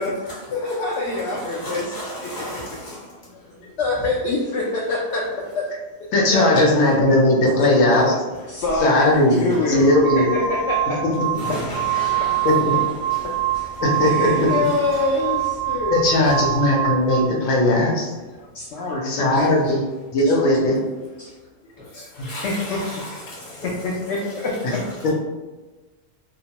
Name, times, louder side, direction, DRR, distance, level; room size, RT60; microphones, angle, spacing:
voice 1, 0.5-2.6 3.8-5.3 5.5-5.7 6.3-6.7 7.1-8.2 8.5-9.9 10.2-11.0 14.0-16.0 18.5-19.8 20.2-20.3 21.2-21.3 21.9-22.8 23.6-24.8, left 2 dB, 65° left, -4 dB, 0.8 m, -26 dB
voice 2, 1.6-3.0 11.4-13.8 14.9-15.0 16.2-16.3 21.8-21.9 22.1-23.7, equal, 20° left, -7 dB, 0.9 m, -35 dB
voice 3, 6.1-8.1 8.8-10.3 11.4-11.5 12.4-12.7 13.8-14.5 15.9-18.1 19.0-19.8 20.1-20.8, left 1 dB, 90° left, -1 dB, 1.0 m, -18 dB
sound 1, 8.7-8.8 9.6-17.4, right 13 dB, 65° right, 0.7 m, -25 dB
2.9 x 2.0 x 2.8 m, 1.2 s
omnidirectional pair, 1.3 m